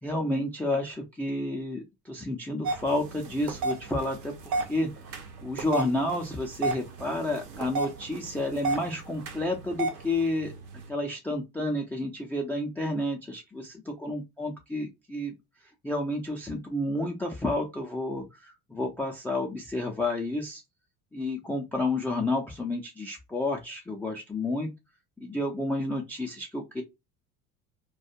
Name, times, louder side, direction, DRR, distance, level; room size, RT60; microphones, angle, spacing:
voice 1, 0.0-10.5 10.9-15.3 15.8-20.6 21.1-24.7 25.2-26.8, left 1 dB, 5° left, 0.3 m, -30 dB
sound 1, 2.6-10.9, right 3 dB, 75° right, 0.7 m, -34 dB
2.3 x 2.3 x 2.7 m
figure-of-eight pair, 65°, 46 cm